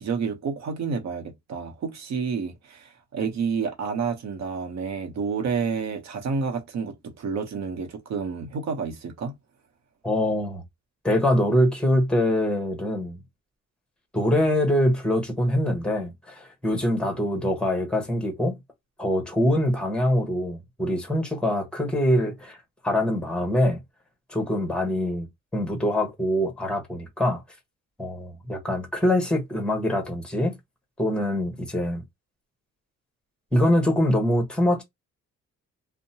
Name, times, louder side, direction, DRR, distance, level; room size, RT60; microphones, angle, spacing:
voice 1, 0.0-9.3, right 5 dB, 65° right, 0.9 m, -29 dB
voice 2, 10.0-10.6 11.0-13.2 14.1-18.6 19.0-22.6 22.8-23.8 24.3-27.4 28.0-30.6 31.0-32.0 33.5-34.8, left 1 dB, 5° left, 1.1 m, -24 dB
2.7 x 2.2 x 2.7 m
cardioid pair, 90°, 30 cm